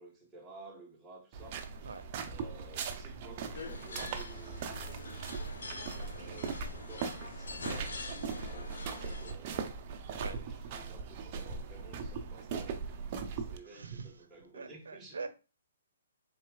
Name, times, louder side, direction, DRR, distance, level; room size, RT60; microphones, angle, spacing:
voice 1, 0.0-1.6 2.2-5.5 6.1-9.8 10.2-15.2, right 2 dB, 10° right, 1.6 m, -54 dB
sound 1, 1.3-13.6, right 5 dB, 40° right, 0.7 m, -40 dB
sound 2, 3.5-9.3, left 3 dB, 70° left, 1.0 m, -45 dB
voice 2, 13.7-14.1 14.5-15.3, right 4 dB, 80° right, 0.7 m, -42 dB
4.3 x 3.9 x 2.4 m
hypercardioid pair, 140°, 0 cm